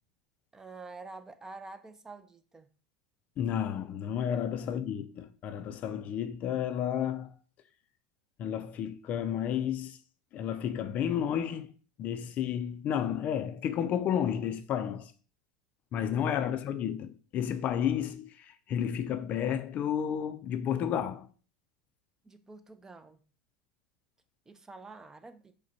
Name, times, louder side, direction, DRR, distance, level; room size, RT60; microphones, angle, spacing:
voice 1, 0.5-2.7 4.6-4.8 16.5-16.6 22.2-23.2 24.5-25.5, right 3 dB, 15° right, 0.5 m, -48 dB
voice 2, 3.4-7.3 8.4-10.0 10.3-11.7 12.0-15.1 15.9-21.3, left 9 dB, 45° left, 0.4 m, -31 dB
4.9 x 2.2 x 4.0 m
hypercardioid pair, 95°, 4 cm